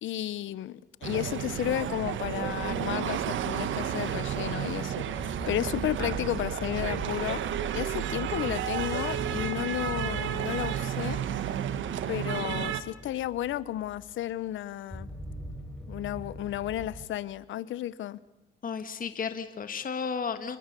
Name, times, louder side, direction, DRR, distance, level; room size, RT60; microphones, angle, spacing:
voice 1, 0.0-11.2 12.1-15.1 15.9-18.2, left 13 dB, 75° left, 18 dB, 0.9 m, -33 dB
sound 1, 1.0-12.8, right 10 dB, 75° right, 1.5 m, -32 dB
sound 2, 2.1-14.6 14.9-17.1, equal, 5° left, 4.4 m, -44 dB
voice 2, 18.6-20.6, left 6 dB, 45° left, 9 dB, 1.6 m, -33 dB
28.0 x 21.0 x 6.9 m, 1.0 s
cardioid pair, 90°, 20 cm